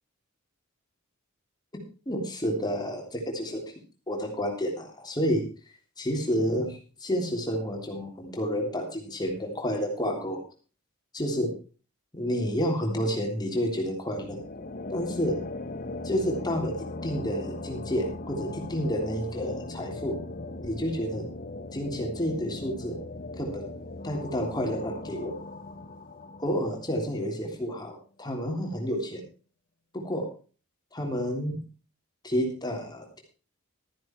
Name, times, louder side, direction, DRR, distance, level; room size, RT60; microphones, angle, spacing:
voice 1, 2.0-3.6 4.1-5.4 6.0-10.4 11.1-11.5 12.1-14.4 14.9-15.4 16.0-20.1 20.6-21.3 21.7-23.0 23.4-23.7 24.0-25.3 26.4-29.2 29.9-30.2 30.9-31.6 32.2-33.2, equal, 20° left, 1 dB, 3.3 m, -30 dB
sound 1, 14.2-27.3, left 2 dB, 40° left, 1.0 m, -39 dB
13.0 x 10.5 x 4.5 m, 0.37 s
head